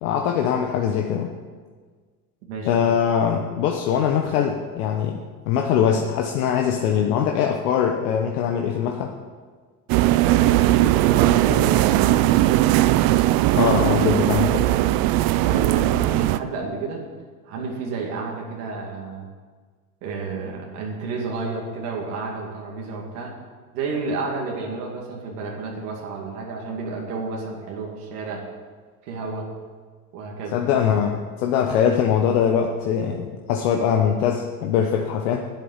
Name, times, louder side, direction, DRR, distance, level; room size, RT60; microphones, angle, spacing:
voice 1, 0.0-1.3 2.6-9.1 13.5-14.8 30.5-35.5, left 8 dB, 70° left, 2 dB, 1.1 m, -22 dB
voice 2, 2.5-2.9 10.2-12.6 15.4-17.0 17.4-19.3 20.0-23.3 23.7-28.4 29.0-29.4 30.1-30.6, right 4 dB, 75° right, -1 dB, 2.5 m, -31 dB
sound 1, 9.9-16.4, right 15 dB, 50° right, 0.6 m, -19 dB
10.5 x 7.9 x 7.4 m, 1.5 s
hypercardioid pair, 75°, 46 cm